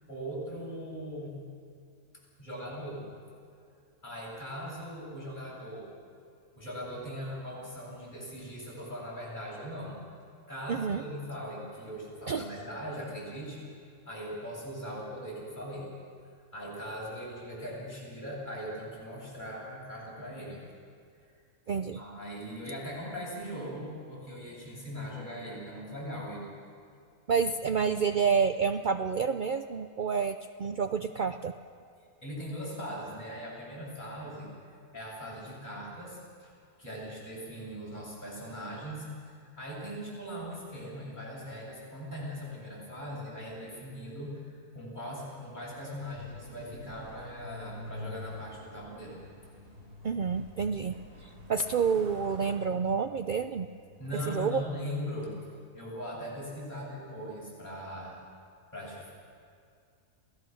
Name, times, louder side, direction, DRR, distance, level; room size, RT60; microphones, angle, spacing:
voice 1, 0.1-1.4 2.4-3.0 4.0-5.9 6.6-10.0 10.5-13.7 14.1-15.9 16.5-20.6 21.9-26.5 32.2-34.5 34.9-36.5 36.8-49.2 54.0-55.4 55.7-58.2 58.7-59.1, equal, 30° left, -5 dB, 8.2 m, -40 dB
voice 2, 10.7-11.0 12.3-12.5 21.7-22.0 27.3-31.5 50.0-50.9 51.5-53.7 54.1-54.6, right 6 dB, 70° right, 8 dB, 0.4 m, -29 dB
Truck, 46.0-54.7, left 2 dB, 45° right, 4.1 m, -48 dB
27.0 x 17.5 x 6.4 m, 2.3 s
omnidirectional pair, 1.6 m